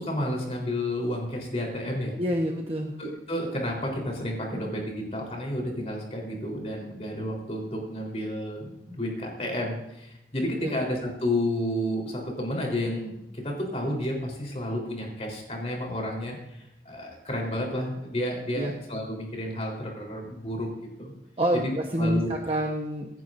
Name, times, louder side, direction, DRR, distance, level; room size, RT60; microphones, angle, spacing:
voice 1, 0.0-2.1 3.0-20.7 21.0-21.1 21.5-21.7 22.0-22.3, left 1 dB, 35° left, 0 dB, 3.8 m, -31 dB
voice 2, 2.2-2.9 10.6-10.7 18.5-18.7 21.4-23.2, right 1 dB, 30° right, 1 dB, 1.1 m, -27 dB
25.5 x 10.5 x 2.6 m, 0.86 s
head